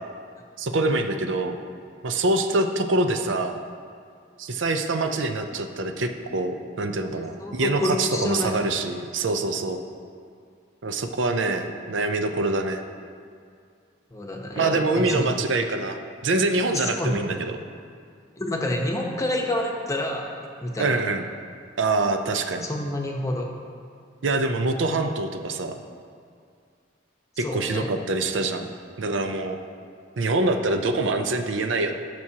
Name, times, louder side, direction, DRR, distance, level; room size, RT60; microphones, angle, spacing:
voice 1, 0.6-1.6 2.0-3.6 4.4-9.8 10.8-12.8 14.6-16.0 16.2-17.5 20.8-21.2 21.8-22.6 24.2-25.8 27.4-28.7 29.0-29.6 30.2-31.9, right 2 dB, 75° right, 6 dB, 0.6 m, -25 dB
voice 2, 7.4-8.5 14.1-15.3 16.7-17.3 18.4-20.3 20.6-21.0 22.6-23.5 27.4-27.9, left 1 dB, 15° left, 1 dB, 0.9 m, -28 dB
15.5 x 6.1 x 2.9 m, 2.2 s
head